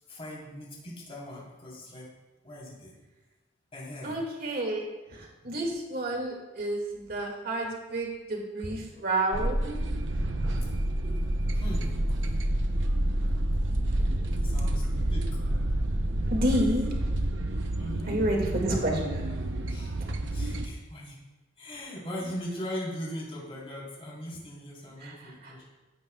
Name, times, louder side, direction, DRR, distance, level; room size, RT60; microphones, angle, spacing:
voice 1, 0.1-2.1 2.4-2.9 3.7-4.2 5.4-5.6 11.0-11.1 11.4-12.3 14.3-15.3 17.8-18.2 19.7-20.0 20.3-21.2 21.6-25.7, equal, 30° left, -4 dB, 3.7 m, -40 dB
voice 2, 4.0-9.8 16.3-16.9 18.1-19.2 25.0-25.5, right 1 dB, 50° right, 0 dB, 2.2 m, -30 dB
sound 1, 9.3-20.7, right 1 dB, 65° right, 0.9 m, -28 dB
15.5 x 9.4 x 2.4 m, 1.1 s
head